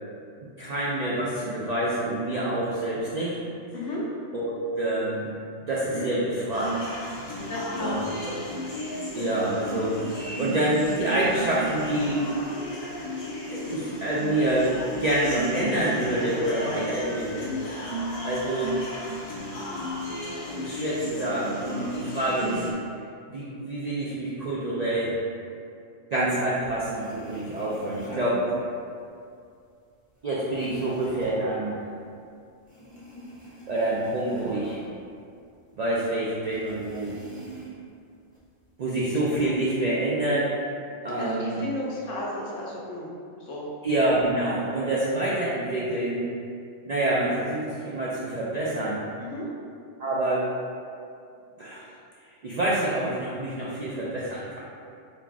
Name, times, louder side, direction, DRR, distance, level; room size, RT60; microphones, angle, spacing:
voice 1, 0.6-3.4 4.3-5.3 5.6-6.9 7.8-8.4 9.1-12.2 13.5-14.7 15.0-17.5 18.2-18.8 20.6-22.7 23.3-25.2 26.1-28.5 30.2-31.8 33.7-34.8 35.8-37.2 38.8-40.5 41.0-41.6 43.8-46.2 46.9-49.0 50.0-50.5 51.6-51.8 52.4-54.6, right 1 dB, 65° right, -7 dB, 0.4 m, -27 dB
voice 2, 3.7-4.1 5.9-6.1 6.4-6.5 7.4-8.3 16.7-16.9 41.1-43.1 43.4-43.7 49.2-49.4, left 1 dB, 80° left, -4 dB, 1.1 m, -33 dB
sound 1, 6.5-22.7, equal, 40° left, 0.5 m, -34 dB
sound 2, 26.6-26.7 26.8-29.1 29.4-32.3 32.6-35.6 35.9-36.0 36.4-37.9 38.3-39.1, right 2 dB, 10° right, 0.6 m, -44 dB
4.1 x 2.3 x 3.5 m, 2.4 s
omnidirectional pair, 1.3 m